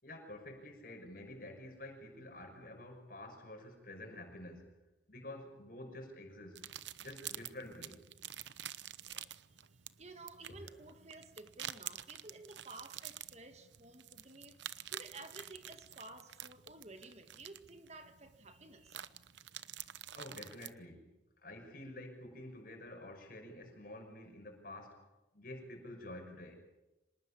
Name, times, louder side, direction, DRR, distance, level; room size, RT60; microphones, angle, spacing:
voice 1, 0.0-4.7 5.1-6.7 7.0-8.0 9.1-9.3 10.6-10.7 20.1-21.1 21.4-25.0 25.3-26.6, left 1 dB, 50° left, 6.1 m, -49 dB
sound 1, 6.5-20.7, right 11 dB, 75° right, 0.9 m, -48 dB
voice 2, 10.0-19.0, right 2 dB, 35° right, 1.7 m, -53 dB
26.0 x 19.5 x 8.6 m
head